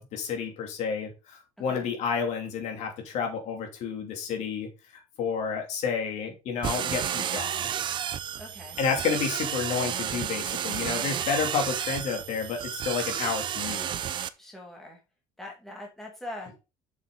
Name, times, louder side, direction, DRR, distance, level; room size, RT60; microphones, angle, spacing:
voice 1, 0.0-7.6 8.8-13.9, left 6 dB, 55° left, 2.7 m, -30 dB
sound 1, 6.6-14.3, right 10 dB, 35° right, 0.5 m, -31 dB
voice 2, 8.4-8.8 14.4-15.0 15.4-16.5, left 1 dB, ahead, 2.3 m, -42 dB
7.2 x 6.4 x 3.8 m
cardioid pair, 160°, 14 cm